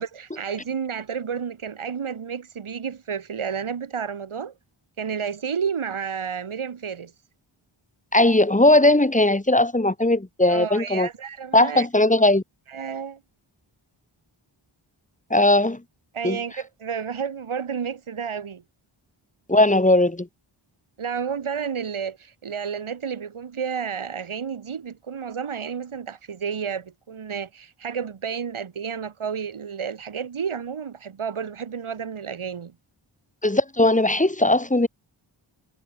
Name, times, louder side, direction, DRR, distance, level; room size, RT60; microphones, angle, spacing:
voice 1, 0.0-4.5 5.0-7.1 10.5-11.9 12.7-13.2 16.1-18.6 21.0-32.7, right 7 dB, 75° right, 1.9 m, -31 dB
voice 2, 8.1-11.1 11.5-12.4 15.3-15.8 16.2-16.4 19.5-20.3 33.4-34.9, left 1 dB, 15° left, 1.8 m, -18 dB
wide cardioid pair, 85°, 49 cm